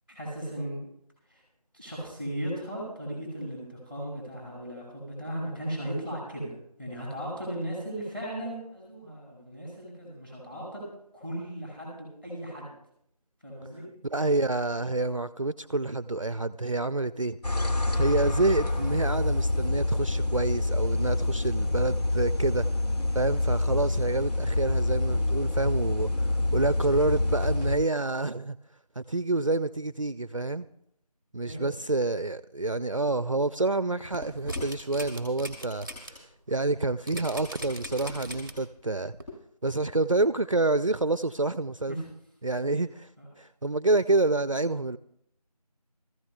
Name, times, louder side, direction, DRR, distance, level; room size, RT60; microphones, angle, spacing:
voice 1, 0.1-0.8 1.3-1.4 1.7-6.5 6.8-10.8 11.1-12.7 13.4-13.8 31.4-31.9 41.9-42.0 43.2-43.3, right 1 dB, 15° left, 5.6 m, -36 dB
voice 2, 14.0-17.4 17.7-22.7 23.1-28.6 29.0-30.7 31.3-39.2 39.6-42.0 42.4-43.1 43.4-45.0, right 2 dB, 55° right, 0.4 m, -28 dB
sound 1, 17.4-27.8, left 2 dB, 80° left, 1.9 m, -27 dB
sound 2, 34.0-36.1 36.5-36.6 37.1-38.7 39.2-39.3, equal, 5° right, 2.2 m, -39 dB
23.5 x 14.5 x 2.2 m
figure-of-eight pair, 175°, 20 cm